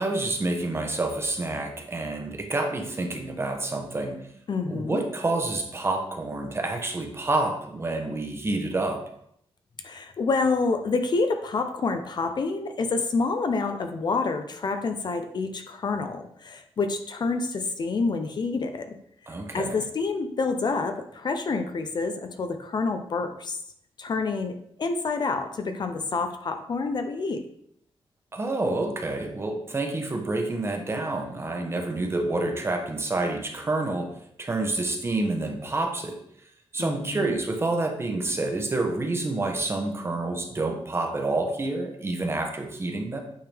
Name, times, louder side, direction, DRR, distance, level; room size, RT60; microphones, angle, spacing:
voice 1, 0.0-4.2 4.7-9.0 19.3-19.8 28.3-34.1 34.4-36.2 36.7-43.2, right 2 dB, 25° right, 4 dB, 0.9 m, -28 dB
voice 2, 4.5-5.0 9.8-18.9 19.5-23.6 24.0-24.5 24.8-27.4 36.8-37.4, left 4 dB, 45° left, 7 dB, 0.6 m, -28 dB
8.6 x 3.7 x 3.4 m, 0.71 s
wide cardioid pair, 140°, 10 cm